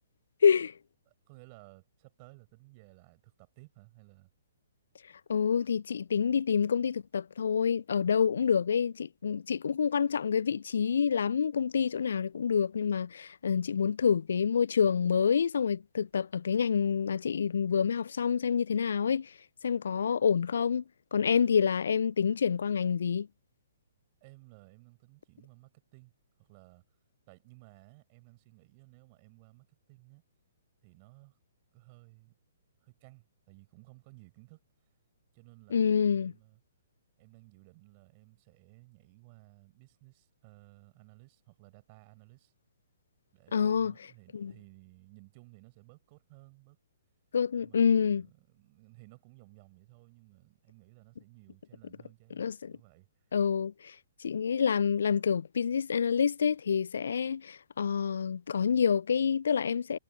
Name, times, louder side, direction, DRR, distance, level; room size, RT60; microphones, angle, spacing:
voice 1, 0.4-0.7 5.3-19.3 19.6-20.8 21.1-23.3 35.7-36.3 43.5-43.9 44.3-44.5 47.3-48.2 52.4-52.7 53.3-53.9 54.2-60.0, left 7 dB, 60° left, 0.4 m, -27 dB
voice 2, 1.1-4.3 24.2-26.1 26.4-26.8 27.3-30.2 30.8-31.4 31.7-32.4 32.8-34.6 35.3-36.6 37.2-42.5 43.3-46.8 47.6-53.1, right 27 dB, 35° right, 4.9 m, -57 dB
figure-of-eight pair, 120°, 0 cm